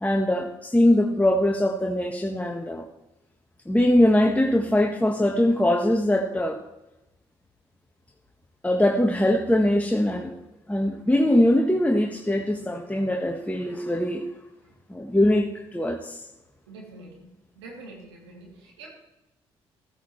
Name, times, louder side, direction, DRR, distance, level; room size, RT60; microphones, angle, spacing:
voice 1, 0.0-2.8 3.6-6.6 8.6-10.3 10.7-14.3 14.9-16.2, left 1 dB, 10° left, 1 dB, 1.4 m, -22 dB
voice 2, 16.7-18.9, right 2 dB, 85° right, -2 dB, 2.8 m, -45 dB
15.0 x 15.0 x 3.2 m, 0.96 s
hypercardioid pair, 45°, 13 cm